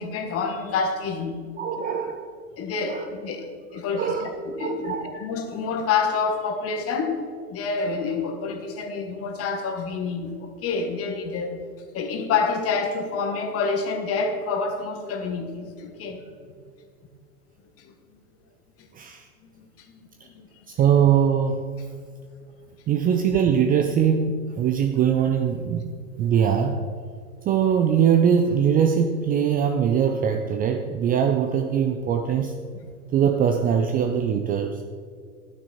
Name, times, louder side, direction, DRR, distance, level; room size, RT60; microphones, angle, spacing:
voice 1, 0.0-1.7 2.6-7.2 7.5-11.6 11.9-16.2 17.8-17.9 19.6-20.0 20.3-20.5, left 5 dB, 30° left, 6 dB, 1.5 m, -28 dB
voice 2, 1.6-2.3 2.8-3.1 3.9-4.3 4.6-5.1 18.9-19.3 20.8-21.6 22.9-25.8 26.2-26.8 27.5-32.5 33.1-34.8, right 8 dB, 20° right, 5 dB, 0.5 m, -22 dB
11.5 x 9.3 x 4.2 m, 2.1 s
figure-of-eight pair, 95°, 44 cm